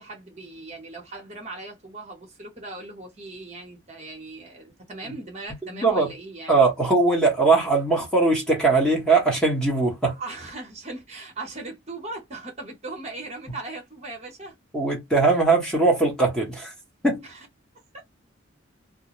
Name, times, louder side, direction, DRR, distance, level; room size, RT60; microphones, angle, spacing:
voice 1, 0.0-6.6 10.0-14.5 17.2-17.5 17.9-18.0, right 2 dB, 35° right, 0.8 m, -38 dB
voice 2, 5.7-6.1 6.5-10.1 14.7-16.7 17.0-17.2, right 3 dB, 5° left, 0.9 m, -20 dB
2.4 x 2.0 x 2.9 m
head